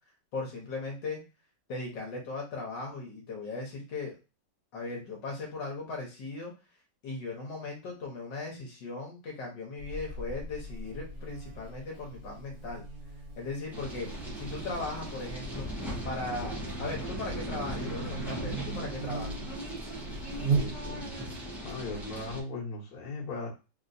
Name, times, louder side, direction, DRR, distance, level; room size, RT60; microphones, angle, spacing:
voice 1, 0.3-1.2 1.7-4.1 4.7-6.5 7.0-12.9 13.4-14.1 14.3-15.7 16.0-19.4, left 3 dB, 75° left, -1 dB, 1.7 m, -38 dB
Buzz, 9.8-21.2, right 4 dB, 55° right, 1.6 m, -38 dB
sound 1, 13.7-22.4, right 1 dB, ahead, 0.6 m, -39 dB
voice 2, 20.5-21.0 21.6-23.5, left 3 dB, 60° left, -3 dB, 1.6 m, -38 dB
3.9 x 2.9 x 2.6 m, 0.29 s
omnidirectional pair, 2.0 m